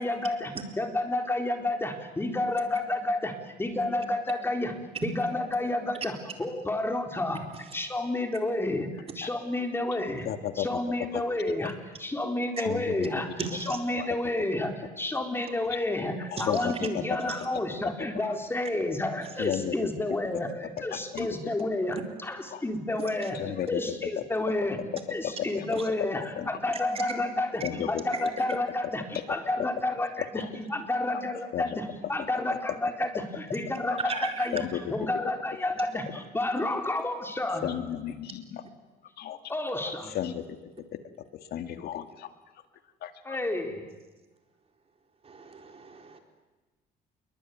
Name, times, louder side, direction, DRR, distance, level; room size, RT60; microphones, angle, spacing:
voice 1, 0.0-4.8 5.0-10.3 10.6-34.6 34.9-37.7 39.5-40.1 43.2-43.9, left 2 dB, 15° left, 5 dB, 4.0 m, -30 dB
voice 2, 10.3-10.8 11.1-11.2 12.6-13.2 14.0-14.1 16.3-17.0 19.4-19.7 20.9-21.5 22.5-22.6 23.3-23.8 24.2-24.3 25.2-25.7 26.1-26.5 27.6-28.0 30.2-30.5 31.5-31.8 33.1-33.2 33.9-34.2 34.5-34.9 37.5-38.6 39.2-39.4 39.8-40.4 40.9-41.0 41.5-42.3 43.0-43.4, left 10 dB, 70° left, 8 dB, 2.1 m, -33 dB
voice 3, 13.4-13.8 16.4-16.5 23.0-23.3 28.1-28.3 34.1-34.5 45.2-46.2, right 4 dB, 35° right, 4 dB, 4.4 m, -36 dB
28.0 x 22.5 x 9.5 m, 1.2 s
cardioid pair, 110°, 17 cm